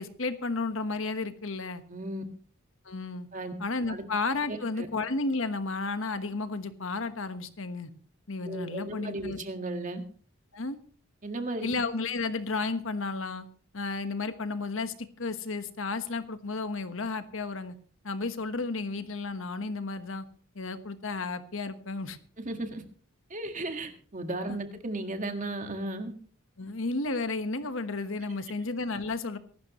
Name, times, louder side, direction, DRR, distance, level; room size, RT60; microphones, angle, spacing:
voice 1, 0.0-1.8 2.8-3.3 3.6-7.9 8.3-9.4 10.5-10.8 11.6-13.5 13.7-17.7 18.0-20.3 20.5-22.2 24.5-24.6 26.6-29.4, left 3 dB, 65° left, 1.3 m, -32 dB
voice 2, 1.9-2.2 3.3-3.5 3.9-4.0 4.5-4.9 8.4-10.0 11.2-11.7 22.4-22.8 23.3-26.1, right 2 dB, 35° right, 1.8 m, -35 dB
23.5 x 12.0 x 3.1 m
head